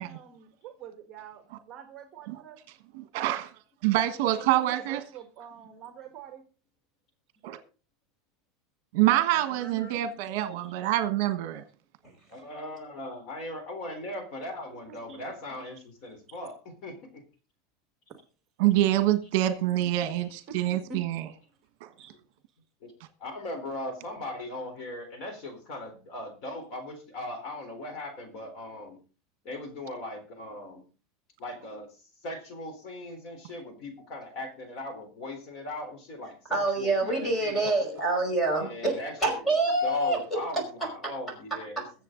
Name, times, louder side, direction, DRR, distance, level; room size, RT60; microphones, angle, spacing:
voice 1, 0.0-2.6 3.9-6.4 14.9-15.2 15.5-15.6 16.3-16.4 20.5-20.6 20.9-21.0 22.0-22.1 37.0-37.1, right 6 dB, 30° right, 1.5 m, -46 dB
voice 2, 2.9-3.5 3.8-5.0 7.4-7.6 8.9-11.6 18.6-21.3 21.8-21.9, right 14 dB, 60° right, 1.3 m, -26 dB
voice 3, 9.5-10.0 36.5-40.4, right 2 dB, 10° left, 5.0 m, -27 dB
voice 4, 12.3-16.6 16.8-17.2 22.8-22.9 23.2-29.0 29.4-30.8 31.4-38.0 38.6-39.1 39.8-41.8, left 1 dB, 40° left, 3.8 m, -39 dB
22.0 x 7.5 x 3.8 m
supercardioid pair, 170°, 0 cm